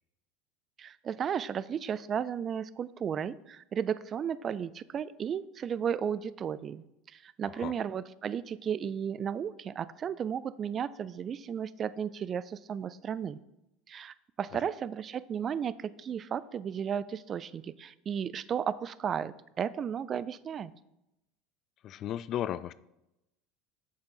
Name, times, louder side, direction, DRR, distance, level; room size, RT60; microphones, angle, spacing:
voice 1, 0.8-6.8 7.1-13.4 13.9-20.7, right 8 dB, 35° right, 17 dB, 0.4 m, -34 dB
voice 2, 21.8-22.7, left 11 dB, 45° left, 16 dB, 0.3 m, -34 dB
8.1 x 6.7 x 3.8 m, 0.88 s
supercardioid pair, 105°, 0 cm